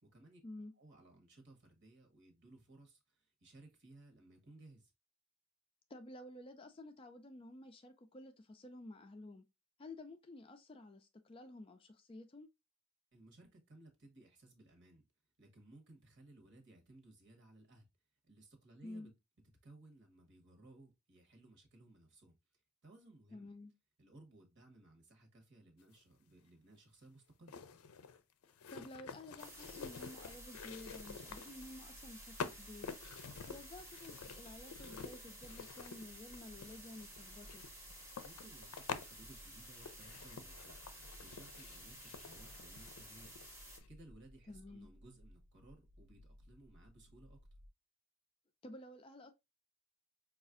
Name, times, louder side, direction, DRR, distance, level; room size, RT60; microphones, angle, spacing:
voice 1, 0.0-0.4 0.8-4.9 13.1-15.0 15.4-17.9 18.2-19.1 19.6-23.5 24.0-27.5 33.2-33.5 38.2-40.8 41.2-43.4 43.9-47.4, right 2 dB, 55° right, 1.1 m, -60 dB
voice 2, 5.9-9.5 9.8-12.5 18.8-19.1 23.3-23.7 28.7-32.9 33.5-37.6 44.5-44.9 48.6-49.3, left 1 dB, 25° left, 0.3 m, -52 dB
sound 1, 26.0-26.1 27.5-31.8 32.4-39.1 39.7-43.5 43.8-43.9, left 6 dB, 85° left, 0.4 m, -48 dB
sound 2, 29.4-43.8, right 1 dB, 15° right, 0.7 m, -54 dB
sound 3, 29.5-47.7, equal, 75° right, 0.5 m, -60 dB
5.0 x 2.4 x 2.4 m
head